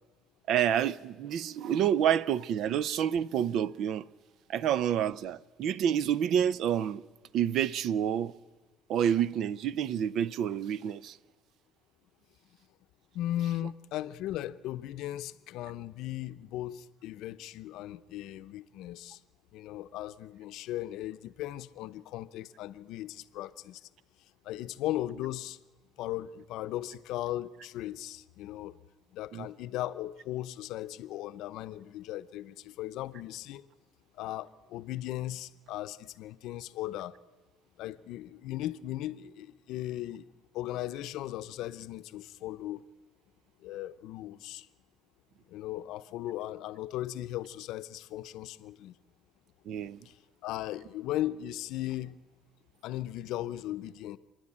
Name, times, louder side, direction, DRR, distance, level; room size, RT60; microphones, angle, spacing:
voice 1, 0.5-4.0 4.5-7.0 7.3-8.3 8.9-11.2 29.3-29.5 49.7-50.0, right 9 dB, 60° right, 0.6 m, -28 dB
voice 2, 13.1-19.2 19.5-23.8 24.4-25.6 26.0-28.8 29.1-33.6 34.2-37.1 37.8-40.3 40.5-42.8 43.6-44.7 45.5-48.9 50.4-52.2 52.8-54.2, left 14 dB, 75° left, 0.7 m, -37 dB
28.5 x 10.5 x 8.7 m
cardioid pair, 130°, 0 cm